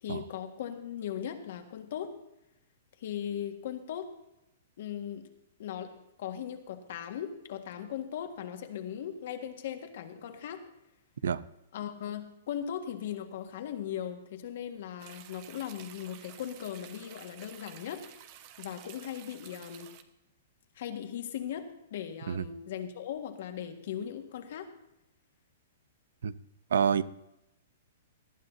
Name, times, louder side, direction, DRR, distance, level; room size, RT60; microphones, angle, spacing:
voice 1, 0.0-2.1 3.0-4.1 4.8-5.3 5.6-5.9 6.2-10.6 11.7-18.0 18.6-19.9 20.7-24.7, left 9 dB, 50° left, 6 dB, 1.6 m, -38 dB
sound 1, 15.0-20.0, right 11 dB, 30° right, 0.8 m, -51 dB
voice 2, 26.7-27.0, right 7 dB, 85° right, 17 dB, 0.6 m, -27 dB
19.0 x 12.5 x 2.7 m, 0.86 s
hypercardioid pair, 175°, 0 cm